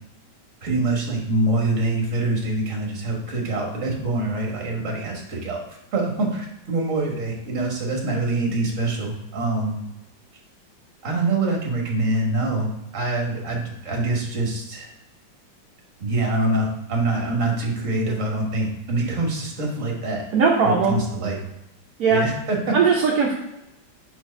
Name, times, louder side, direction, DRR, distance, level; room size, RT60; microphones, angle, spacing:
voice 1, 0.6-5.6 5.9-9.8 11.0-12.7 12.9-14.9 16.0-20.2 20.6-21.4 22.1-22.8, right 2 dB, 45° right, -1 dB, 1.6 m, -25 dB
voice 2, 20.3-21.0 22.0-22.2 22.7-23.3, right 5 dB, 60° right, -2 dB, 1.1 m, -18 dB
4.5 x 4.4 x 5.2 m, 0.90 s
omnidirectional pair, 2.1 m